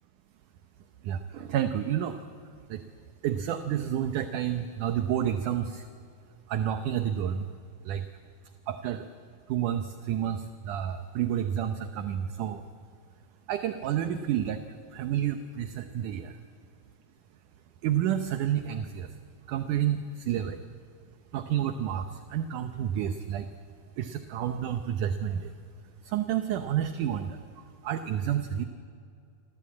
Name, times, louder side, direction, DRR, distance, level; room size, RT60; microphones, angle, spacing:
voice 1, 1.0-2.2 2.7-2.8 3.2-5.9 6.5-7.5 7.8-8.1 8.7-9.1 9.5-12.6 13.5-14.6 14.9-16.4 17.8-19.1 19.5-20.6 21.3-23.5 24.0-25.5 26.0-28.7, right 10 dB, 70° right, 8 dB, 2.0 m, -30 dB
27.5 x 25.5 x 8.6 m, 2.5 s
omnidirectional pair, 4.5 m